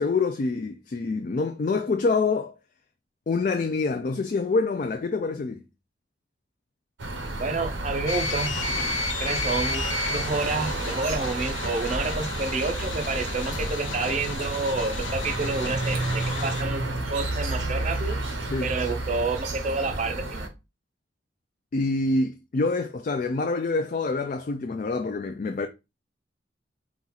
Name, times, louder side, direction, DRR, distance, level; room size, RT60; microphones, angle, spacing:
voice 1, 0.0-2.5 3.3-5.6 18.5-18.8 21.7-25.7, left 3 dB, 45° left, 0.3 m, -26 dB
sound 1, 7.0-20.5, right 2 dB, 85° right, 0.9 m, -31 dB
voice 2, 7.4-8.5 9.2-18.2 18.6-20.5, right 3 dB, 40° right, 0.5 m, -29 dB
sound 2, 8.1-16.6, left 4 dB, 90° left, 0.7 m, -33 dB
4.1 x 2.3 x 4.1 m
head